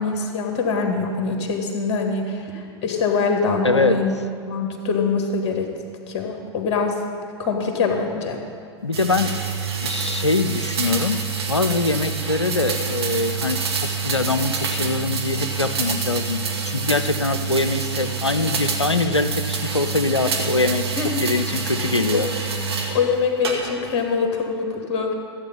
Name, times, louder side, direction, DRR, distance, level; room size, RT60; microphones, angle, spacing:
voice 1, 0.0-5.7 6.1-7.0 7.4-8.4 21.0-21.2 22.1-22.3 22.9-25.1, left 4 dB, 40° left, 3 dB, 1.9 m, -24 dB
voice 2, 3.6-4.0 8.8-9.3 9.8-11.2 11.5-13.6 14.0-20.9 21.2-22.3, left 3 dB, 90° left, 9 dB, 0.5 m, -23 dB
sound 1, 8.9-23.0 23.4-24.0, right 5 dB, 65° right, 1.7 m, -26 dB
14.0 x 8.0 x 5.5 m, 2.2 s
figure-of-eight pair, 95°, 14 cm